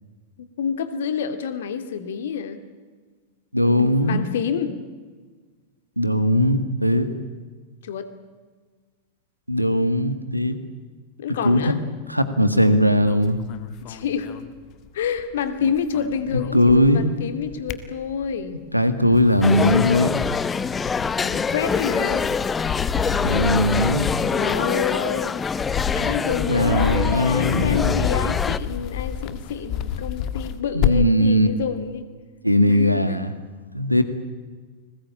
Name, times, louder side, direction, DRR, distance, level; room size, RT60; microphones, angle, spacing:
voice 1, 0.4-2.6 3.6-4.8 7.8-8.1 11.2-11.8 13.8-14.4 14.9-18.6 21.2-22.3 23.8-25.4 25.9-32.1 32.7-33.2, left 7 dB, 60° left, 10 dB, 2.4 m, -28 dB
voice 2, 3.5-4.2 6.0-7.1 9.5-10.6 11.4-11.7 12.1-13.4 16.5-17.0 18.7-20.1 23.1-24.1 26.5-27.9 30.7-31.5 32.4-33.3 33.7-34.0, equal, 90° right, 11 dB, 2.0 m, -19 dB
sound 1, 13.0-15.2 15.5-17.1 17.4-18.5 19.0-31.2, left 8 dB, 40° left, 1.8 m, -29 dB
sound 2, 19.4-28.6, left 5 dB, 15° left, 0.8 m, -25 dB
30.0 x 21.0 x 8.7 m, 1.4 s
figure-of-eight pair, 90°, 0 cm